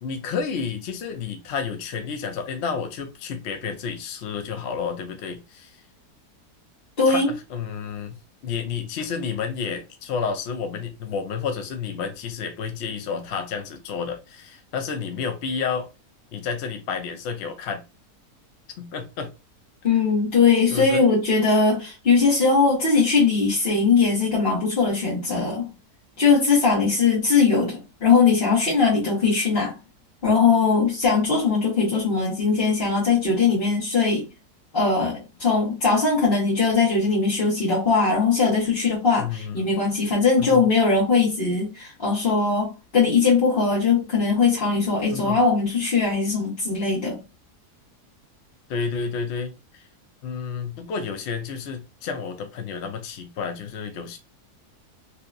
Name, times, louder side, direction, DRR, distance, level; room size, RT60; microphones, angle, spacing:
voice 1, 0.0-5.8 7.1-8.2 8.4-15.9 16.3-17.8 18.8-19.3 20.7-21.0 39.2-39.7 40.4-40.7 45.1-45.4 48.7-49.5 50.2-54.2, left 6 dB, 65° left, 0.7 m, -30 dB
voice 2, 7.0-7.3 19.8-25.7 26.2-29.7 30.2-34.3 34.7-47.2, left 4 dB, 40° left, 1.3 m, -20 dB
3.2 x 2.8 x 2.4 m
omnidirectional pair, 1.7 m